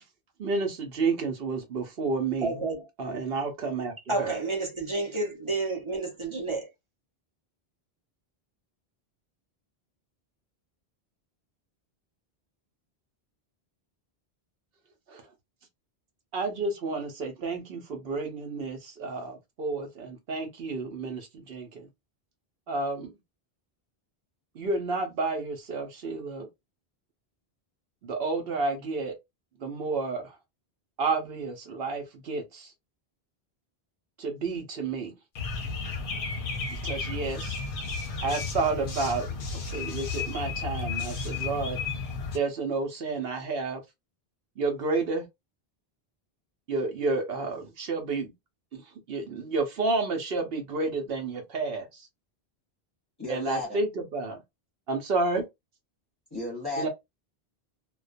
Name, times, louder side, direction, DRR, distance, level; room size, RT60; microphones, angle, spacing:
voice 1, 0.4-2.5 3.0-4.4 15.1-15.2 16.3-21.9 22.7-23.1 24.6-26.5 28.0-29.1 29.6-30.3 31.0-32.7 34.2-35.1 36.7-37.6 38.2-39.3 39.7-41.8 42.3-43.8 44.6-45.2 46.7-48.3 48.7-48.8 49.1-51.9 53.3-54.4 54.9-55.4 56.8-56.9, right 3 dB, 70° right, 0.9 m, -30 dB
voice 2, 2.4-2.9 4.1-6.7, right 3 dB, 35° right, 0.6 m, -30 dB
sound 1, 35.4-42.4, left 4 dB, 65° left, 0.7 m, -33 dB
voice 3, 53.2-53.8 56.3-56.9, left 1 dB, 25° left, 0.8 m, -33 dB
2.3 x 2.1 x 2.4 m
omnidirectional pair, 1.1 m